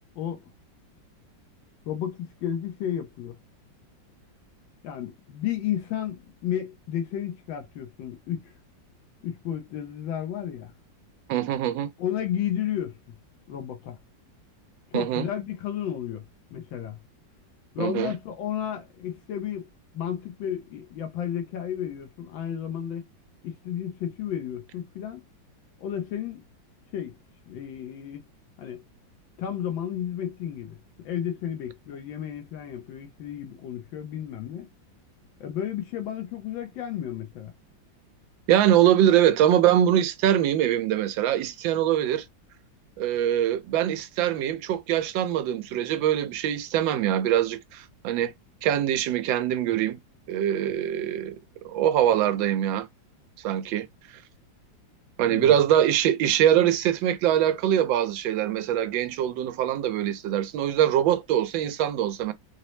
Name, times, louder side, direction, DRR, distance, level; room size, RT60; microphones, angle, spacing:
voice 1, 1.9-3.4 4.8-8.5 9.2-10.7 12.0-13.0 13.5-14.0 14.9-16.2 16.5-17.0 17.7-19.7 19.9-23.1 23.4-25.2 25.8-26.4 26.9-27.2 27.5-28.2 28.6-28.8 29.4-30.8 31.0-34.7 35.4-37.5 55.2-55.5, left 10 dB, 85° left, 1.5 m, -32 dB
voice 2, 11.3-11.9 14.9-15.3 17.8-18.1 38.5-42.2 43.0-48.3 48.6-50.0 50.3-51.3 51.6-52.9 53.4-53.9 55.2-62.3, right 11 dB, 85° right, 1.3 m, -23 dB
4.2 x 2.0 x 3.1 m
omnidirectional pair, 2.0 m